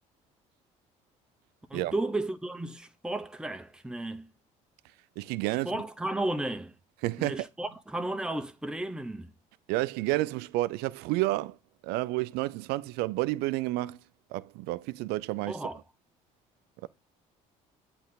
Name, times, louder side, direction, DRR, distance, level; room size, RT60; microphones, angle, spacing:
voice 1, 1.7-4.3 5.6-6.7 7.2-9.3 15.5-15.8, right 2 dB, 5° right, 0.8 m, -33 dB
voice 2, 5.2-5.7 7.0-7.5 9.7-11.6 11.8-14.0 14.3-15.6 16.8-16.9, right 18 dB, 75° right, 0.4 m, -30 dB
8.2 x 3.3 x 4.0 m
supercardioid pair, 70°, 17 cm